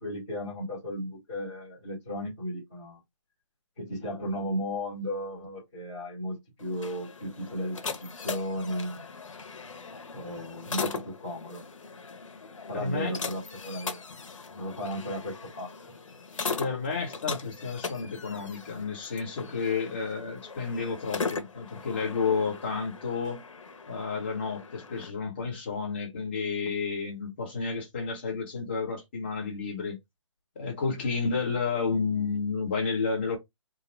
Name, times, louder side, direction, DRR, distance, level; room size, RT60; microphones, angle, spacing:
voice 1, 0.0-3.0 3.8-9.0 10.1-11.6 12.7-14.0 14.5-15.7, equal, ahead, 0.4 m, -35 dB
sound 1, 6.6-25.1, left 4 dB, 80° left, 1.0 m, -39 dB
voice 2, 12.7-13.1 16.6-23.4 23.9-30.0 30.5-33.4, left 5 dB, 20° left, 1.3 m, -31 dB
3.8 x 2.3 x 4.5 m
hypercardioid pair, 180°, 16 cm